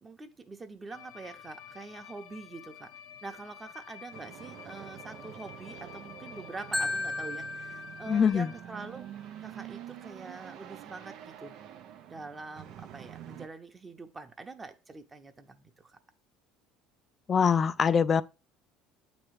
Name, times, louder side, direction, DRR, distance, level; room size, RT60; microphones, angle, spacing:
voice 1, 0.0-2.9 3.2-9.0 9.4-11.6 12.1-16.0, right 3 dB, 20° right, 1.0 m, -45 dB
sound 1, 0.9-8.6, left 9 dB, 85° left, 0.9 m, -50 dB
sound 2, 4.1-13.5, right 11 dB, 65° right, 0.7 m, -47 dB
Marimba xylophone, 6.7-8.8, left 2 dB, 5° left, 0.7 m, -35 dB
voice 2, 8.1-8.5 17.3-18.2, left 6 dB, 35° left, 0.4 m, -23 dB
8.5 x 3.2 x 4.7 m
supercardioid pair, 90°, 0 cm